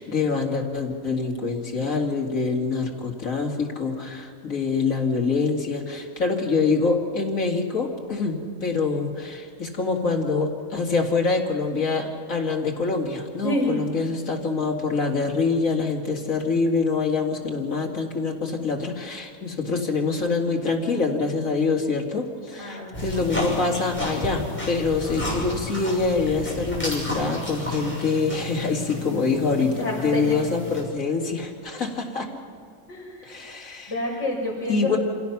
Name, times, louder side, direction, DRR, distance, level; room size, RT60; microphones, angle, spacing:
voice 1, 0.0-32.3 33.2-33.9 34.7-35.0, left 4 dB, 70° left, 0 dB, 2.7 m, -25 dB
voice 2, 13.4-13.8 22.6-23.2 29.0-29.2 29.6-30.4 32.9-33.4 33.9-35.0, left 1 dB, 50° left, -10 dB, 6.2 m, -29 dB
sound 1, 22.9-30.8, left 2 dB, 10° left, 6.2 m, -32 dB
27.0 x 17.0 x 5.9 m, 2.4 s
omnidirectional pair, 1.5 m